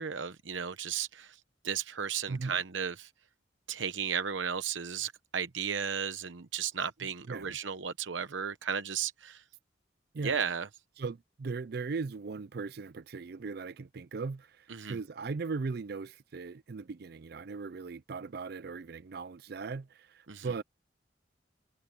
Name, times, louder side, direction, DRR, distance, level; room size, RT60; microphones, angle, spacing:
voice 1, 0.0-1.4 1.6-3.1 3.7-9.4 10.2-10.7 14.7-15.0 20.3-20.5, right 7 dB, 85° right, 0.9 m, -34 dB
voice 2, 7.3-7.6 10.1-10.4 11.0-20.6, right 4 dB, 55° right, 0.4 m, -38 dB
head